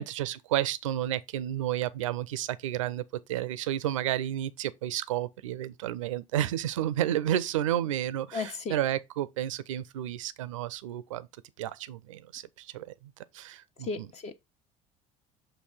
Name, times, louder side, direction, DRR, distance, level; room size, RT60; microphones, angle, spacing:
voice 1, 0.0-3.0 3.3-11.3 11.6-12.9 13.3-14.1, right 12 dB, 90° right, 0.5 m, -31 dB
voice 2, 8.3-8.7 13.8-14.4, left 4 dB, 45° left, 1.1 m, -35 dB
6.7 x 2.7 x 5.4 m
hypercardioid pair, 75°, 16 cm